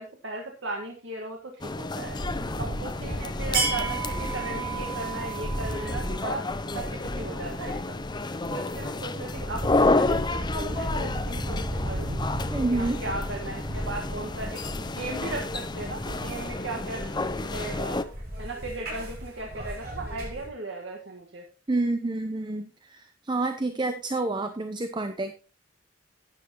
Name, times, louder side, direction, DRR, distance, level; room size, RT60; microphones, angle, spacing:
voice 1, 0.0-2.2 2.6-6.5 6.7-8.2 8.5-12.2 12.7-17.1 17.5-18.0 18.4-21.5, right 2 dB, 70° right, 1 dB, 1.6 m, -37 dB
sound 1, 1.6-18.0, left 2 dB, 25° left, 0.6 m, -31 dB
sound 2, 2.0-20.5, right 1 dB, 55° right, 6.6 m, -34 dB
voice 2, 12.5-13.0 21.7-25.3, right 2 dB, 25° right, 8 dB, 0.7 m, -28 dB
12.0 x 9.8 x 2.9 m, 0.33 s
head